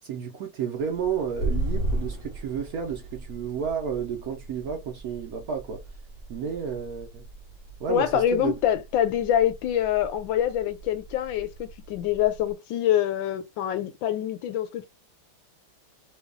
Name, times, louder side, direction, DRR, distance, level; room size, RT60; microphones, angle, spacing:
voice 1, 0.0-5.8 6.3-7.2 7.8-8.5, right 7 dB, 65° right, 0.9 m, -31 dB
sound 1, 0.8-12.5, right 1 dB, 50° left, 0.7 m, -36 dB
voice 2, 7.9-14.9, left 10 dB, 80° left, 1.4 m, -25 dB
3.1 x 2.3 x 3.6 m
omnidirectional pair, 2.1 m